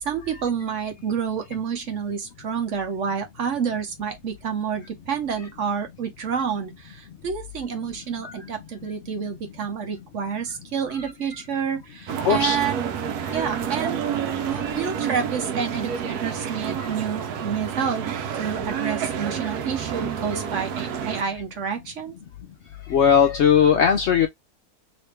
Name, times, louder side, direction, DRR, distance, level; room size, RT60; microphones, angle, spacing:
voice 1, 0.0-12.8 13.3-14.0 14.4-18.1 18.3-22.2, right 7 dB, 55° right, 1.0 m, -29 dB
sound 1, 12.1-21.2, right 8 dB, 85° right, 1.2 m, -29 dB
voice 2, 12.2-12.6 13.3-13.4 22.9-24.3, left 7 dB, 65° left, 0.7 m, -18 dB
3.1 x 3.0 x 3.2 m
omnidirectional pair, 1.6 m